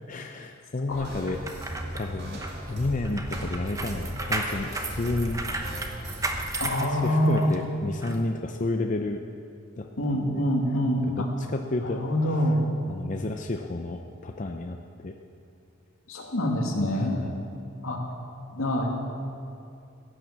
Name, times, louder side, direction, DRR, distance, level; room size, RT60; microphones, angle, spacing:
voice 1, 0.1-2.4 2.7-5.5 6.6-9.2 9.8-9.9 10.3-10.4 11.1-12.0 12.9-15.1 17.0-17.4, left 2 dB, 35° left, 4 dB, 0.6 m, -31 dB
sound 1, 0.9-6.6, right 1 dB, 50° right, 2.1 m, -37 dB
sound 2, 1.3-7.6 8.0-8.2, right 2 dB, 15° right, 0.9 m, -34 dB
voice 2, 6.6-7.5 10.0-11.3 11.8-12.7 16.1-17.2 17.8-18.0 18.5-18.9, equal, 80° left, 0 dB, 2.3 m, -25 dB
16.0 x 9.0 x 7.3 m, 2.6 s
head